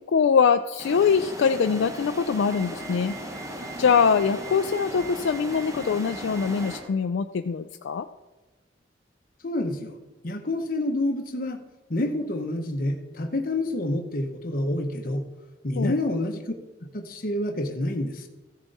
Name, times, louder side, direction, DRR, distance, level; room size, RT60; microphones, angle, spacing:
voice 1, 0.1-3.2 3.8-8.1 15.8-16.0, left 6 dB, 80° left, 8 dB, 0.4 m, -23 dB
sound 1, 0.8-6.8, equal, 15° right, 1.1 m, -37 dB
sound 2, 2.5-6.9, right 4 dB, 75° right, 3.9 m, -44 dB
voice 2, 9.4-10.0 10.2-11.6 11.9-15.3 15.6-16.4 16.9-18.3, left 1 dB, 50° left, 5 dB, 1.0 m, -28 dB
14.5 x 7.1 x 4.1 m, 1.2 s
head